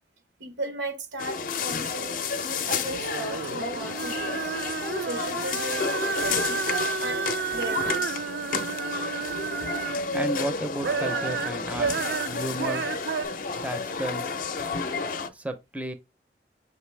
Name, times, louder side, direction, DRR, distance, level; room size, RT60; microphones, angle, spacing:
voice 1, 0.4-4.5 5.0-5.9 6.2-7.3 7.5-8.1, right 2 dB, 90° right, 1.0 m, -36 dB
sound 1, 1.2-15.3, left 5 dB, 50° left, 0.5 m, -31 dB
sound 2, 2.8-10.3 10.7-13.3, right 6 dB, 65° right, 0.3 m, -31 dB
voice 2, 9.9-11.9 12.3-12.9 13.5-14.3 15.3-15.9, right 1 dB, 10° right, 0.5 m, -33 dB
5.9 x 2.6 x 3.2 m
head